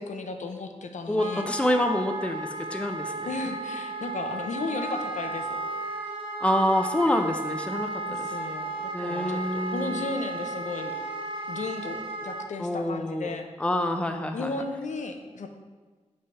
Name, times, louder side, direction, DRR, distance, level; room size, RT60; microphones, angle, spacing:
voice 1, 0.0-1.5 3.3-5.6 8.1-10.9 11.5-13.5 14.3-15.5, left 3 dB, 85° left, 5 dB, 0.6 m, -34 dB
voice 2, 1.1-3.3 6.4-8.4 8.9-10.1 12.6-14.5, left 1 dB, 10° left, 6 dB, 0.4 m, -27 dB
Wind instrument woodwind instrument, 1.1-12.5, right 2 dB, 45° right, 0.9 m, -34 dB
5.6 x 3.3 x 5.3 m, 1.4 s
wide cardioid pair, 100°, 12 cm